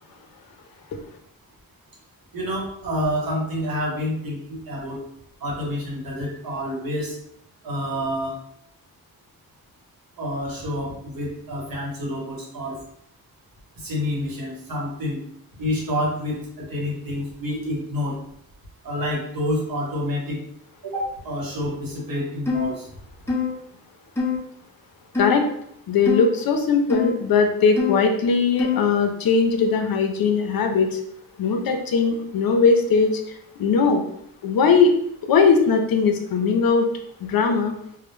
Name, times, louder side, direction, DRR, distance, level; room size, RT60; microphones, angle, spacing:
voice 1, 2.3-5.0 5.4-7.2 7.6-8.4 10.2-12.8 13.8-15.2 15.6-18.2 18.8-20.4 20.8-22.9, left 1 dB, 70° right, -3 dB, 1.0 m, -28 dB
sound 1, 22.5-22.7 23.3-23.5 24.2-24.4 25.1-25.4 26.1-26.3 26.9-27.1 27.8-28.0 28.6-28.9, left 5 dB, 5° left, 0.5 m, -24 dB
voice 2, 25.2-25.5 25.9-31.0 31.4-33.1 33.6-34.0 34.4-34.9 35.2-36.9 37.2-37.7, left 5 dB, 70° left, 4 dB, 0.5 m, -19 dB
2.1 x 2.1 x 3.0 m, 0.72 s
cardioid pair, 90°, 36 cm